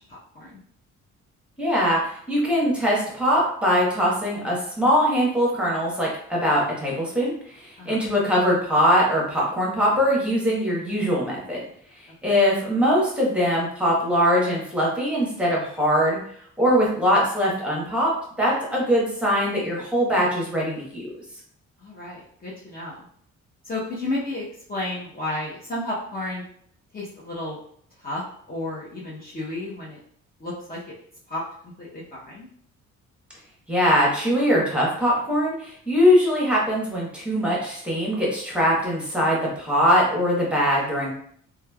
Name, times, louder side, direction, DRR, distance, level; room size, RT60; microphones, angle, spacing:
voice 1, 0.1-0.6 7.8-8.0 21.8-23.1 23.7-24.4 24.7-26.4 26.9-27.6 28.0-30.0 30.4-30.8 31.3-32.5, left 2 dB, 30° left, -6 dB, 0.7 m, -32 dB
voice 2, 1.6-11.6 12.2-16.2 16.6-18.1 18.4-21.1 33.7-41.1, equal, 5° right, -4 dB, 1.0 m, -22 dB
3.0 x 2.3 x 2.2 m, 0.63 s
cardioid pair, 90°, 30 cm